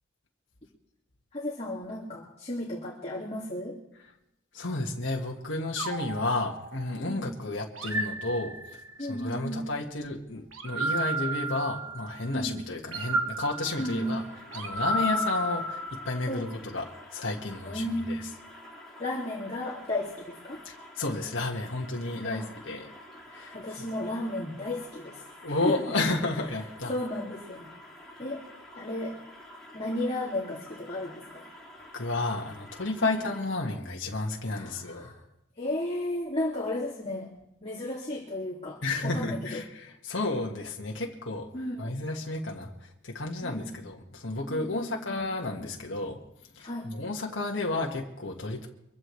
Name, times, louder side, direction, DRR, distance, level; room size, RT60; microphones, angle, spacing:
voice 1, 1.3-3.8 7.1-7.3 9.0-9.6 12.3-12.6 13.8-14.2 14.9-15.1 16.3-16.5 17.6-18.2 19.0-20.6 22.2-22.5 23.5-25.8 26.9-27.7 28.2-28.4 28.8-29.2 29.7-31.5 33.0-33.2 34.5-35.2 35.6-37.3 37.6-39.6 41.5-42.0 43.4-43.8 44.5-45.1 46.6-46.9, left 1 dB, 30° left, -5 dB, 2.3 m, -34 dB
voice 2, 4.5-8.6 9.0-14.2 14.5-16.5 16.7-18.2 20.6-22.9 23.3-23.6 25.4-26.9 31.9-35.1 38.8-41.5 41.8-46.2 46.5-48.7, left 2 dB, 65° left, -1 dB, 1.7 m, -32 dB
sound 1, 5.8-7.1 7.8-9.0 10.5-12.2 12.9-16.4, right 2 dB, 90° right, 1.5 m, -32 dB
sound 2, 13.6-33.4, left 1 dB, 5° left, 4.4 m, -49 dB
24.0 x 15.0 x 3.2 m, 0.87 s
head